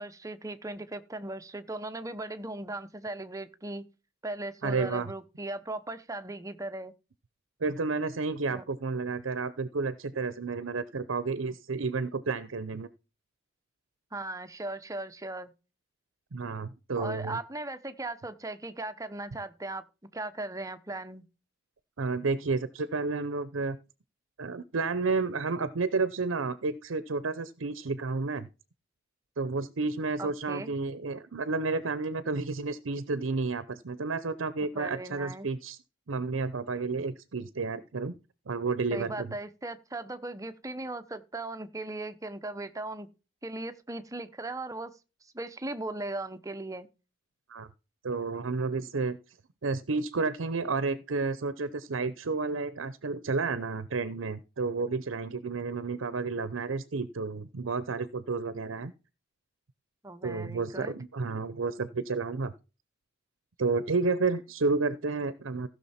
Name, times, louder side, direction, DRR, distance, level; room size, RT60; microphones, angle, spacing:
voice 1, 0.0-3.9 4.2-6.9 8.5-8.6 14.1-15.5 17.0-21.2 30.2-30.7 34.6-35.5 38.9-43.1 43.4-45.0 45.3-46.9 60.0-61.0, right 2 dB, 15° right, 0.8 m, -38 dB
voice 2, 4.6-5.1 7.6-12.9 16.3-17.4 22.0-23.8 24.4-28.5 29.4-35.8 36.1-38.1 38.5-39.3 47.5-47.7 48.0-49.2 49.6-58.9 60.2-62.5 63.6-65.7, right 4 dB, 85° right, 0.7 m, -31 dB
15.0 x 6.5 x 4.3 m
head